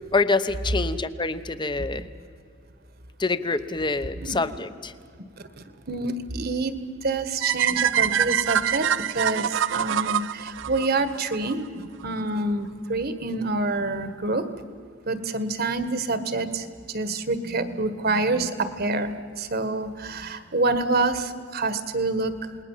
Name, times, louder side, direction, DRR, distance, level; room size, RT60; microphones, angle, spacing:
voice 1, 0.1-2.1 3.2-4.9, left 3 dB, 25° left, 12 dB, 0.9 m, -26 dB
voice 2, 5.9-6.7 7.0-14.5 15.0-22.3, right 2 dB, 55° right, 11 dB, 1.6 m, -27 dB
sound 1, 7.4-11.5, right 9 dB, 75° right, 0.5 m, -24 dB
28.0 x 20.0 x 7.4 m, 2.2 s
head